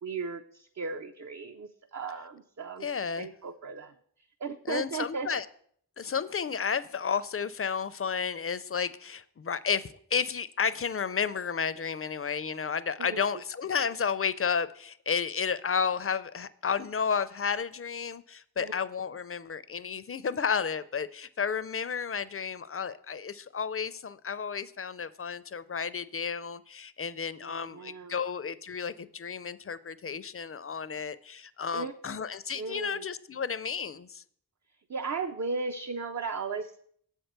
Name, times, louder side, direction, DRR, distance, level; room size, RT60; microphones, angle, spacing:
voice 1, 0.0-2.9 3.2-3.9 4.4-5.3 13.0-13.2 18.6-18.7 27.4-28.1 31.7-31.9 32.5-33.0 34.9-36.9, right 4 dB, 45° right, 0.5 m, -36 dB
voice 2, 2.8-3.3 4.7-5.5 6.0-34.2, left 6 dB, 40° left, 0.4 m, -32 dB
7.6 x 4.5 x 6.6 m
wide cardioid pair, 45°, 38 cm